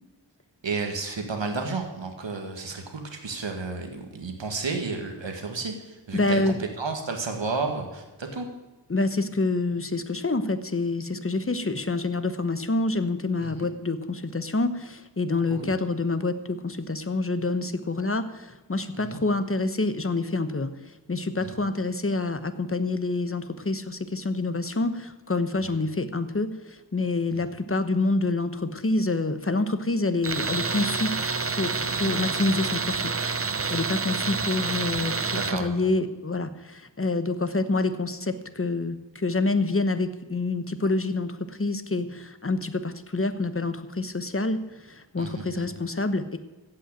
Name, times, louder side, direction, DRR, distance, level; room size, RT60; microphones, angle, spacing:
voice 1, 0.6-8.5 13.4-13.7 15.5-15.7 18.9-19.2 21.4-21.5 35.2-35.7 45.2-45.7, right 4 dB, 80° right, 4 dB, 1.8 m, -32 dB
voice 2, 6.1-6.6 8.9-31.1 31.5-33.1 33.7-46.4, left 3 dB, 30° left, 10 dB, 1.0 m, -27 dB
Tools, 30.2-35.6, right 4 dB, 30° right, 0.7 m, -28 dB
15.5 x 5.7 x 8.8 m, 1.1 s
wide cardioid pair, 60°, 43 cm